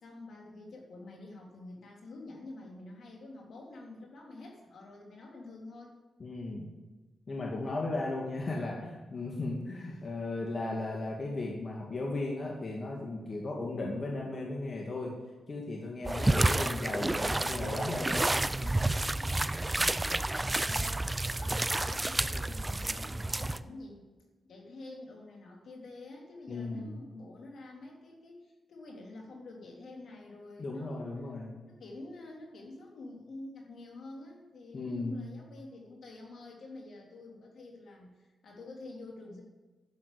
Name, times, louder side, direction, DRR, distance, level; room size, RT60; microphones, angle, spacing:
voice 1, 0.0-5.9 9.8-10.1 19.7-24.0 24.4-31.2 31.6-39.4, left 2 dB, 75° left, -1 dB, 3.3 m, -48 dB
voice 2, 6.2-6.7 7.3-15.1 15.5-18.3 18.6-18.7 19.0-19.2 26.5-26.9 30.6-31.5 34.7-35.3, left 2 dB, 50° left, -2 dB, 2.2 m, -36 dB
sound 1, 16.0-23.6, right 2 dB, 20° right, 0.5 m, -30 dB
10.5 x 7.5 x 8.4 m, 1.2 s
cardioid pair, 75°, 0 cm